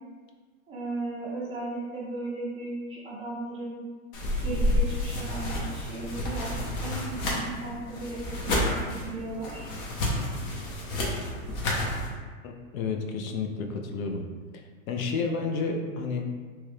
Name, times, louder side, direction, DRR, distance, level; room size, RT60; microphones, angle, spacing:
voice 1, 0.7-3.8 4.4-9.7, right 2 dB, 15° right, -7 dB, 0.5 m, -36 dB
sound 1, 4.1-12.1, left 1 dB, 40° left, 0.7 m, -30 dB
voice 2, 12.4-14.2 14.9-16.4, left 4 dB, 80° left, 3 dB, 0.6 m, -31 dB
3.0 x 2.3 x 3.2 m, 1.5 s
supercardioid pair, 140°, 41 cm